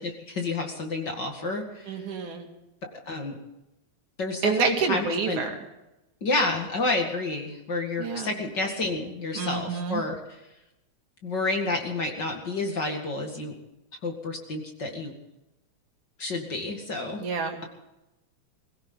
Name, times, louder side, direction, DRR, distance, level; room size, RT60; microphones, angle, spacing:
voice 1, 0.0-2.0 3.1-3.4 4.2-5.5 6.2-10.2 11.2-13.6 14.0-15.1 16.2-17.2, left 2 dB, 40° left, 2 dB, 2.4 m, -30 dB
voice 2, 1.9-2.5 4.4-5.5 8.0-8.3 9.4-10.0 17.2-17.6, right 5 dB, 80° right, 3 dB, 3.6 m, -28 dB
22.5 x 16.0 x 3.9 m, 0.95 s
omnidirectional pair, 3.4 m